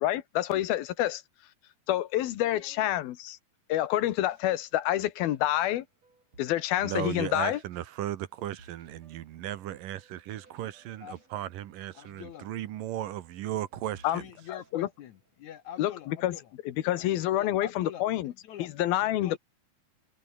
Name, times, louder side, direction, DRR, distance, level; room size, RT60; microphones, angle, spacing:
voice 1, 0.0-1.2 1.9-3.4 3.7-5.8 6.4-7.6 14.0-14.2 14.5-14.9 15.8-16.4 16.7-18.3 18.6-19.4, left 13 dB, 80° left, 3.1 m, -28 dB
voice 2, 2.4-2.9 11.0-11.2 12.0-12.5 14.1-16.5 16.9-17.0 17.3-18.7 19.0-19.4, left 10 dB, 65° left, 2.0 m, -45 dB
sound 1, 4.1-15.7, right 3 dB, 45° right, 8.2 m, -61 dB
voice 3, 6.8-14.3, right 12 dB, 70° right, 2.7 m, -36 dB
omnidirectional pair, 4.2 m